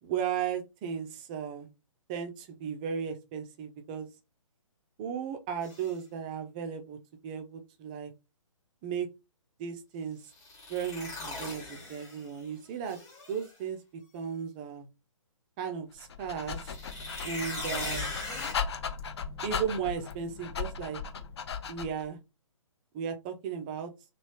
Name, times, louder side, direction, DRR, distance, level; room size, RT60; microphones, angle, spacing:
voice 1, 0.0-1.7 2.1-4.1 5.0-7.0 7.2-8.1 8.8-9.1 9.6-10.2 10.7-13.0 13.3-13.8 14.1-14.9 15.6-16.6 17.2-18.1 19.4-21.0 21.7-22.2 22.9-23.9, right 7 dB, 15° right, 6 dB, 0.3 m, -35 dB
sound 1, 5.6-5.9 10.3-12.4 12.8-13.5 16.5-18.5, left 2 dB, 15° left, 1.2 m, -39 dB
Dog, 16.0-22.1, left 6 dB, 50° left, 0.5 m, -37 dB
2.9 x 2.3 x 3.1 m, 0.26 s
figure-of-eight pair, 135°, 17 cm